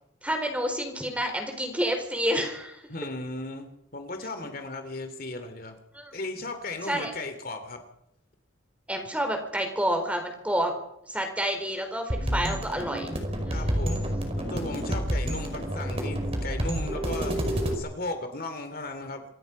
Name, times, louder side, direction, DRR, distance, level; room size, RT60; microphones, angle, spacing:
voice 1, 0.2-2.8 4.4-4.5 5.9-6.1 6.9-7.1 8.9-10.7 11.1-13.1 13.5-13.8, equal, 5° right, 5 dB, 4.3 m, -29 dB
voice 2, 2.9-5.7 6.1-7.8 12.2-12.7 13.5-19.2, left 2 dB, 45° left, 7 dB, 2.7 m, -36 dB
sound 1, 12.1-17.7, equal, 30° right, 5.3 m, -29 dB
27.0 x 23.0 x 5.3 m, 0.77 s
head